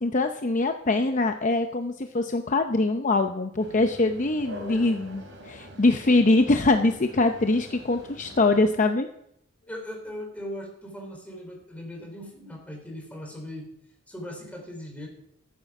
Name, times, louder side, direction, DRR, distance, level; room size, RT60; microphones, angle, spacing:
voice 1, 0.0-9.1, left 2 dB, 40° left, 6 dB, 0.7 m, -23 dB
sound 1, 3.6-8.7, equal, 90° right, 3.3 m, -44 dB
voice 2, 9.7-13.7 14.1-15.1, left 1 dB, 10° left, 1 dB, 3.8 m, -39 dB
14.0 x 9.6 x 6.0 m, 0.77 s
head